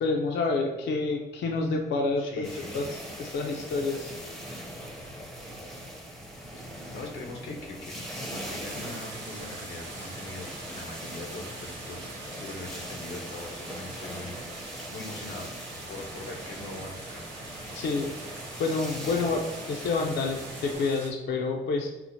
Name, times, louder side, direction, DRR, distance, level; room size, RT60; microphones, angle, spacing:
voice 1, 0.0-2.5 2.7-4.1 17.7-18.1 18.6-21.9, left 3 dB, 60° left, 1 dB, 0.5 m, -28 dB
voice 2, 2.2-2.9 6.7-7.9 8.3-14.4 14.9-15.5 15.9-17.3, left 2 dB, 90° left, 2 dB, 0.8 m, -41 dB
sound 1, 2.4-20.8, equal, ahead, 0.6 m, -41 dB
sound 2, 8.6-21.1, right 3 dB, 70° right, 0.7 m, -44 dB
4.3 x 2.0 x 2.7 m, 1.1 s
cardioid pair, 90°, 20 cm